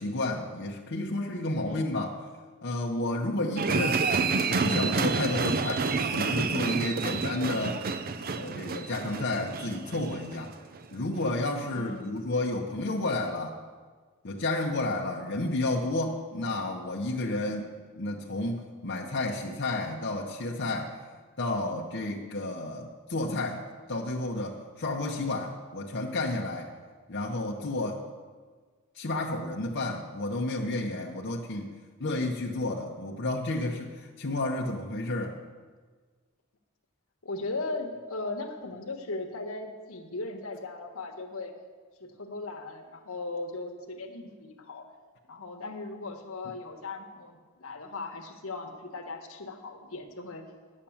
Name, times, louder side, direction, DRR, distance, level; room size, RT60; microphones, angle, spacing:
voice 1, 0.0-2.1 2.6-4.0 4.5-7.8 8.4-10.5 10.9-13.6 14.2-17.6 18.0-21.0 21.4-23.6 23.9-26.7 27.1-28.0 28.9-31.7 32.0-35.4, left 2 dB, 55° left, -2 dB, 0.8 m, -31 dB
sound 1, 3.6-10.9 11.2-11.3, right 4 dB, 45° right, 0.5 m, -29 dB
voice 2, 7.0-7.3 11.7-12.1 17.5-17.6 37.2-41.5 42.0-44.9 45.3-50.5, left 3 dB, 75° left, 4 dB, 1.2 m, -38 dB
10.0 x 7.4 x 7.2 m, 1.5 s
head